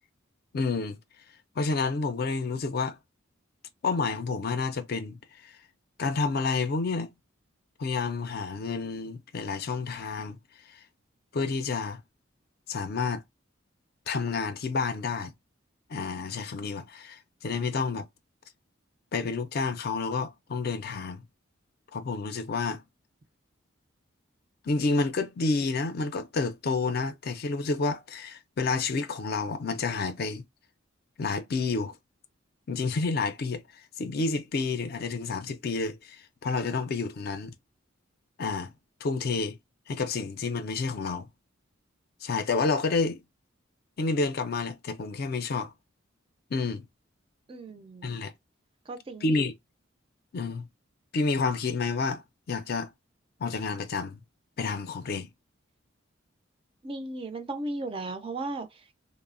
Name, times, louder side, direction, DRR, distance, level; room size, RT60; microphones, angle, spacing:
voice 1, 0.5-1.0 1.6-3.0 3.8-5.2 5.4-5.6 6.0-7.1 7.8-10.4 10.7-10.8 11.3-12.0 12.7-13.2 14.1-15.3 15.9-18.1 19.1-21.2 21.9-22.8 24.6-30.4 31.2-31.9 32.7-37.5 38.4-38.7 39.0-39.6 39.9-41.3 42.2-43.2 44.0-45.7 46.5-46.9 48.0-48.3 49.2-49.5 50.3-50.7 51.1-52.2 52.5-52.9 53.4-54.2 54.6-55.3, left 4 dB, 50° left, 0.4 m, -29 dB
voice 2, 47.5-48.1 48.9-49.5 56.8-59.0, right 2 dB, 25° right, 0.3 m, -36 dB
3.0 x 2.0 x 2.4 m
head